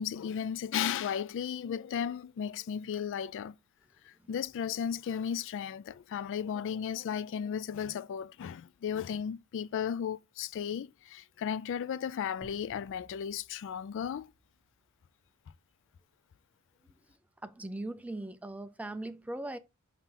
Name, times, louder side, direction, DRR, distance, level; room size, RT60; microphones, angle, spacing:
voice 1, 0.0-3.6 4.0-14.3, left 8 dB, 60° left, 0.3 m, -35 dB
sound 1, 12.4-15.2, equal, 40° right, 1.6 m, -60 dB
voice 2, 17.4-19.6, right 1 dB, 5° right, 0.5 m, -39 dB
5.8 x 5.8 x 3.8 m
head